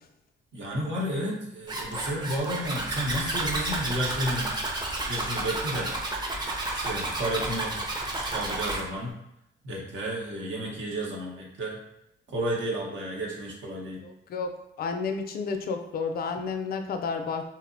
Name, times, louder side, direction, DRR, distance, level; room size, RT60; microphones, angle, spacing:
voice 1, 0.5-4.5 5.1-5.9 6.7-7.8 8.1-9.1 9.6-11.8 12.3-14.0, right 1 dB, 70° right, -3 dB, 0.8 m, -32 dB
Zipper (clothing), 1.7-8.8, right 2 dB, 20° right, 0.5 m, -31 dB
voice 2, 14.0-14.5 14.8-17.5, left 5 dB, 50° left, 5 dB, 0.4 m, -31 dB
2.7 x 2.0 x 2.5 m, 0.82 s
cardioid pair, 90°, 20 cm